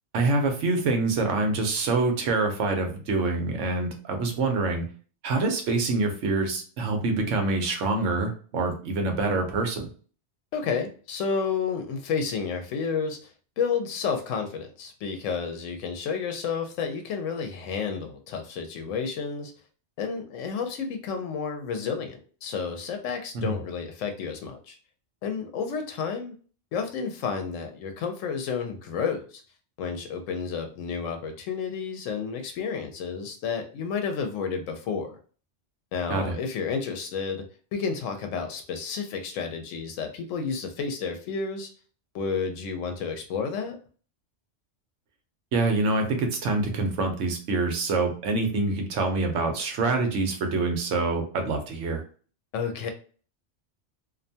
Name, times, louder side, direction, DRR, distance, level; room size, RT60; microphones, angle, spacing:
voice 1, 0.1-4.8 5.2-9.9 23.3-23.6 36.1-36.4 45.5-52.0, right 3 dB, 75° right, 4 dB, 1.0 m, -26 dB
voice 2, 10.5-13.2 13.6-19.5 20.0-24.8 25.2-26.3 26.7-29.4 29.8-35.2 35.9-41.7 42.1-43.8 52.5-52.9, left 6 dB, 85° left, 5 dB, 0.9 m, -31 dB
2.6 x 2.2 x 2.6 m, 0.40 s
omnidirectional pair, 1.3 m